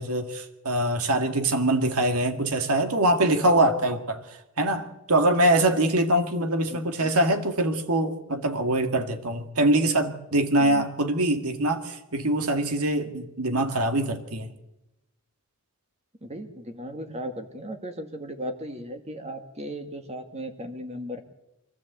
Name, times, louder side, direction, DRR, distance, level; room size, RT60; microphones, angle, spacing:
voice 1, 0.0-14.5, right 1 dB, 85° right, 7 dB, 2.0 m, -24 dB
voice 2, 6.7-7.1 10.6-10.8 16.2-21.2, equal, 30° right, 6 dB, 2.0 m, -36 dB
23.5 x 14.0 x 8.1 m, 0.94 s
head